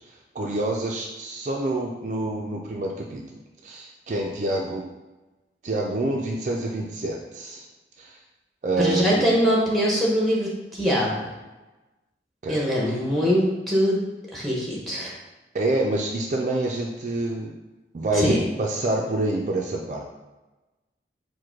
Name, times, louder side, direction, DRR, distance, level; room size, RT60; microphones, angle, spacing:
voice 1, 0.3-3.2 3.6-4.8 5.6-7.6 8.0-8.1 8.6-9.3 12.4-12.6 15.5-17.6 17.9-18.3 18.6-20.0, right 2 dB, 40° right, -1 dB, 0.4 m, -27 dB
voice 2, 8.8-11.3 12.5-14.0 14.3-15.1 18.1-18.4, equal, ahead, -4 dB, 0.9 m, -22 dB
4.7 x 2.1 x 4.5 m, 1.1 s
head